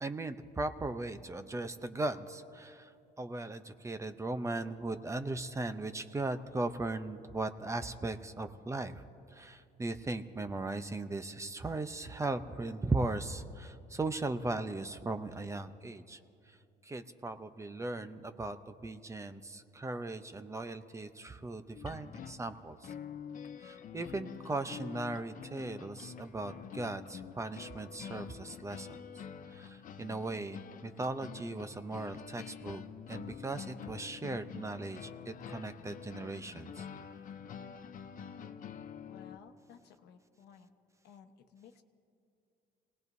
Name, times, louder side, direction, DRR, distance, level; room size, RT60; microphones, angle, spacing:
voice 1, 0.0-2.9 3.2-9.0 9.3-16.2 16.5-16.6 16.8-22.9 23.6-29.0 29.5-32.8 33.1-36.9, right 2 dB, 15° right, 9 dB, 0.7 m, -38 dB
sound 1, 21.7-39.4, left 8 dB, 50° left, 0.7 m, -47 dB
voice 2, 39.0-40.7 41.0-41.8, left 7 dB, 75° left, 7 dB, 1.1 m, -57 dB
28.5 x 18.5 x 2.7 m, 2.5 s
cardioid pair, 110°, 17 cm